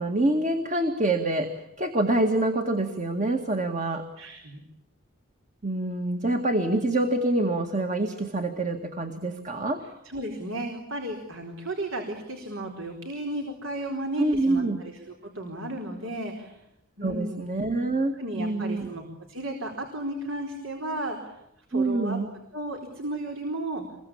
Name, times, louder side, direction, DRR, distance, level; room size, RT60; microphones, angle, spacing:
voice 1, 0.0-4.1 5.6-9.8 14.2-14.8 17.0-18.1 18.4-18.9 21.7-22.3, right 2 dB, 35° right, 5 dB, 2.1 m, -26 dB
voice 2, 4.2-4.6 10.0-15.0 15.3-16.6 17.0-17.4 18.2-19.0 19.3-21.4 21.7-22.2 22.5-23.8, right 1 dB, 70° right, 3 dB, 4.3 m, -34 dB
27.5 x 23.0 x 8.7 m, 0.84 s
head